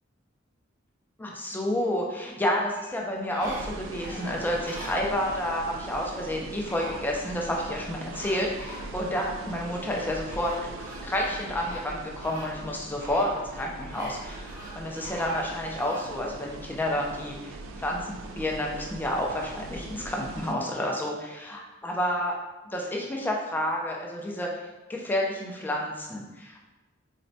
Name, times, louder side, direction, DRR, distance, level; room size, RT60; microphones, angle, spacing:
voice 1, 1.2-22.3 22.7-24.5 24.9-26.6, left 1 dB, 10° left, -1 dB, 0.3 m, -30 dB
sound 1, 2.6-5.5 6.3-6.4 6.7-7.8 8.1-9.3 9.9-16.1 16.6-16.7, equal, 45° right, 0.9 m, -44 dB
sound 2, 3.4-20.5, right 2 dB, 85° right, 0.3 m, -41 dB
4.1 x 2.1 x 2.6 m, 1.1 s
head